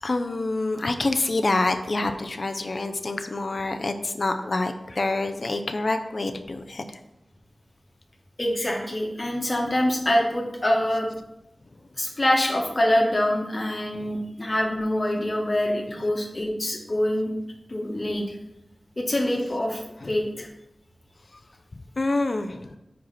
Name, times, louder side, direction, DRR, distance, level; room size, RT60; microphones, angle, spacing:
voice 1, 0.0-7.0 13.9-14.1 20.0-20.1 22.0-22.8, left 2 dB, 60° left, 7 dB, 0.5 m, -27 dB
voice 2, 8.4-11.1 12.0-17.3 17.7-18.4 19.0-20.5, left 1 dB, 45° left, -1 dB, 1.3 m, -25 dB
4.8 x 4.6 x 5.7 m, 0.87 s
wide cardioid pair, 45°, 0 cm